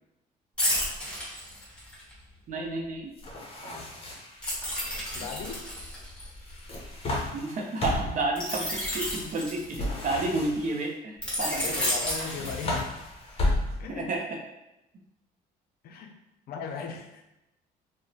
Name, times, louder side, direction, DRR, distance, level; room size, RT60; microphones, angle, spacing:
sound 1, 0.6-2.1 4.4-7.2 8.4-10.2 11.2-13.1 13.5-13.7, equal, 5° left, 1.2 m, -32 dB
voice 1, 2.5-3.1 7.3-11.8 13.9-14.4, right 2 dB, 50° right, 1 dB, 0.6 m, -31 dB
sound 2, 3.2-4.4 6.4-8.3 9.7-10.9 12.0-14.0, left 1 dB, 35° left, 0.7 m, -32 dB
voice 2, 5.1-5.6 11.4-12.9 13.8-14.1 15.8-16.1 16.5-17.2, left 5 dB, 65° left, 4 dB, 0.4 m, -37 dB
2.8 x 2.1 x 2.6 m, 0.91 s
cardioid pair, 110°, 17 cm